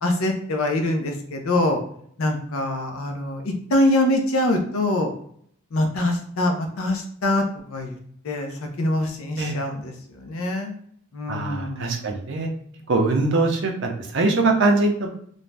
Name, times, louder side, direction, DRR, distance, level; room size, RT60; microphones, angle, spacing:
voice 1, 0.0-1.8 2.2-5.1 5.7-8.0 8.2-10.7 11.1-12.1, left 1 dB, 70° left, 3 dB, 0.5 m, -24 dB
voice 2, 11.3-12.5 12.9-15.1, right 3 dB, 55° right, 2 dB, 0.5 m, -22 dB
2.5 x 2.1 x 3.2 m, 0.64 s
head